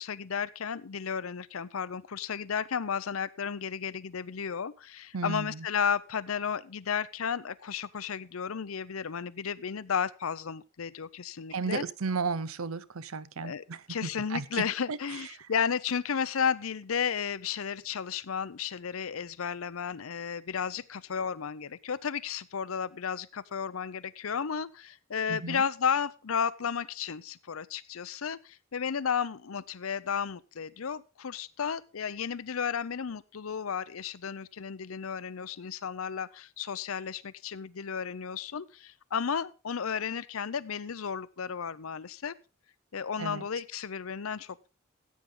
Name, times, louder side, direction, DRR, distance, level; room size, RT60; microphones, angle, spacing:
voice 1, 0.0-11.8 13.4-13.6 13.9-42.3 42.9-44.7, left 7 dB, 80° left, 17 dB, 0.6 m, -33 dB
voice 2, 5.1-5.7 11.5-15.2 25.3-25.6 43.2-43.5, right 4 dB, 80° right, 17 dB, 0.7 m, -34 dB
15.0 x 8.5 x 3.8 m, 0.32 s
head